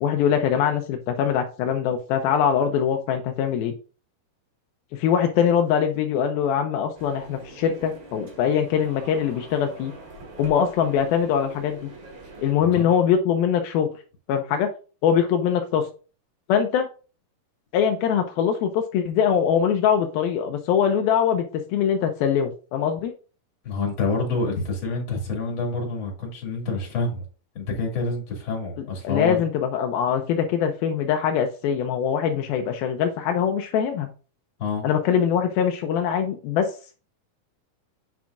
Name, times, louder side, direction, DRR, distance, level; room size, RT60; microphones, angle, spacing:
voice 1, 0.0-3.7 4.9-9.9 10.4-11.9 12.4-13.9 14.3-14.7 15.0-15.9 16.5-16.9 17.7-23.1 29.0-34.1 34.8-36.7, left 8 dB, 80° left, 2.5 m, -22 dB
sound 1, 6.9-12.5, right 2 dB, 55° right, 3.6 m, -44 dB
voice 2, 23.6-27.2 27.5-29.4 34.6-34.9, left 3 dB, 35° left, 2.8 m, -27 dB
8.2 x 6.0 x 2.5 m
omnidirectional pair, 4.4 m